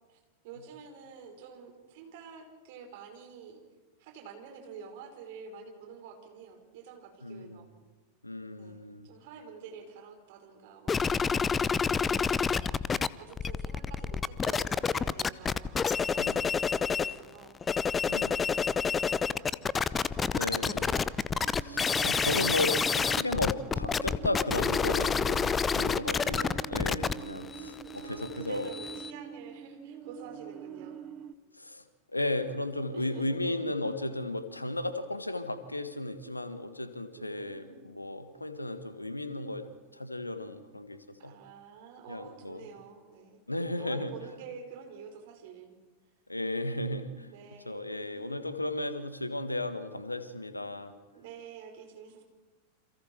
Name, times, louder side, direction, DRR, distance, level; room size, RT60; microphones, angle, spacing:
voice 1, 0.1-3.6 4.0-7.7 8.6-12.7 13.2-17.6 18.4-19.7 20.5-21.1 27.2-31.0 32.9-33.6 37.2-37.8 41.2-43.4 43.8-45.8 47.3-48.3 51.1-52.2, right 6 dB, 50° right, 4 dB, 5.1 m, -49 dB
voice 2, 7.2-7.6 8.2-9.1 16.2-16.5 18.1-18.5 20.3-20.9 21.6-28.7 31.5-41.3 42.1-42.7 43.5-44.1 46.3-47.3 47.7-51.0, left 2 dB, 85° left, 10 dB, 1.7 m, -35 dB
sound 1, 10.9-13.1 13.3-17.2 17.5-29.1, left 6 dB, 20° left, 0.7 m, -28 dB
sound 2, 21.4-31.3, right 8 dB, 35° right, 1.0 m, -45 dB
29.5 x 27.0 x 4.6 m, 1.3 s
figure-of-eight pair, 90°, 0 cm